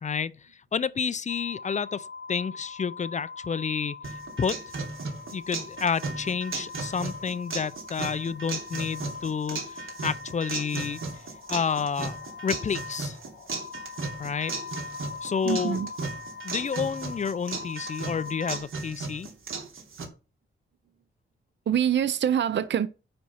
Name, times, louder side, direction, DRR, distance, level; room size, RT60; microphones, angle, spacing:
voice 1, 0.0-4.6 5.3-11.0 11.5-12.2 12.4-13.2 14.2-14.6 15.2-15.8 16.4-19.3, left 6 dB, 35° left, 0.4 m, -30 dB
sound 1, 1.3-18.6, left 5 dB, 60° left, 1.8 m, -42 dB
sound 2, 4.0-20.1, right 4 dB, 80° right, 2.8 m, -36 dB
voice 2, 15.4-15.9 21.7-22.9, right 9 dB, 60° right, 0.5 m, -25 dB
9.6 x 4.2 x 5.5 m
wide cardioid pair, 180°, 21 cm